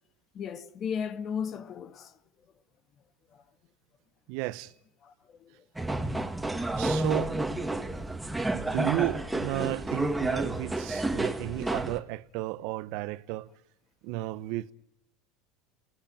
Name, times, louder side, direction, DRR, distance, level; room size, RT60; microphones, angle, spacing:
voice 1, 0.3-2.1 3.3-3.4 5.0-5.6 6.3-6.4 7.9-8.0, left 7 dB, 40° left, 1.7 m, -36 dB
voice 2, 4.3-4.7 6.7-7.4 8.5-13.5 14.0-14.7, right 18 dB, 65° right, 0.9 m, -33 dB
sound 1, 5.8-12.0, right 2 dB, 5° right, 2.2 m, -30 dB
29.0 x 20.0 x 9.0 m
supercardioid pair, 105°, 0 cm